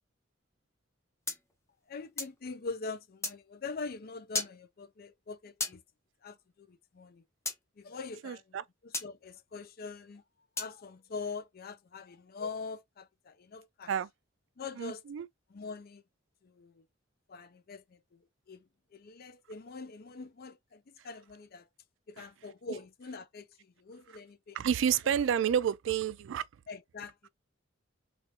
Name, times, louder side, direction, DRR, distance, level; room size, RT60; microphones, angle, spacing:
sound 1, 1.3-2.4 3.2-3.4 4.3-4.6 5.6-5.8 7.5-7.6 8.9-9.1 10.6-10.8, left 3 dB, 15° left, 0.7 m, -35 dB
voice 1, 1.9-5.8 6.2-7.2 7.8-8.6 8.8-10.2 10.6-13.9 14.6-15.0 15.5-16.0 16.4-16.8 17.3-21.7 22.1-24.6 25.1-25.2 26.7-27.3, left 4 dB, 50° left, 0.5 m, -43 dB
voice 2, 8.2-8.6 13.9-14.1 14.8-15.3 22.2-22.3 24.1-24.2 24.5-26.4, right 8 dB, 70° right, 0.3 m, -30 dB
3.6 x 2.4 x 2.7 m
head